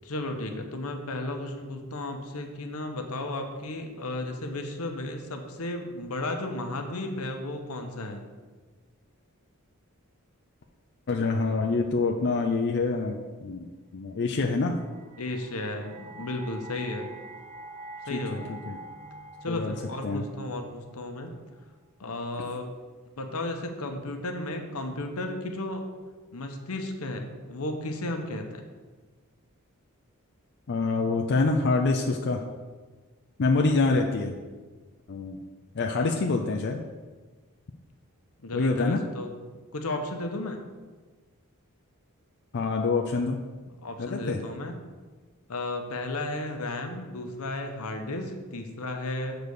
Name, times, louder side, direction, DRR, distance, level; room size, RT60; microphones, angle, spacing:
voice 1, 0.0-8.2 15.2-17.1 18.1-18.5 19.4-21.3 22.0-22.7 23.2-25.9 26.3-28.6 35.9-36.4 38.4-39.3 39.7-40.6 43.8-44.7 45.5-49.3, left 2 dB, 80° left, 5 dB, 0.9 m, -34 dB
voice 2, 11.1-14.7 18.1-18.4 18.7-18.8 19.5-19.7 20.0-20.3 30.7-32.4 33.4-34.3 35.1-35.4 35.7-36.8 38.5-39.0 42.5-43.4 44.0-44.4, left 3 dB, 50° left, 1 dB, 0.5 m, -26 dB
sound 1, 14.7-21.7, right 2 dB, 30° right, 0.6 m, -46 dB
6.8 x 4.0 x 6.5 m, 1.4 s
head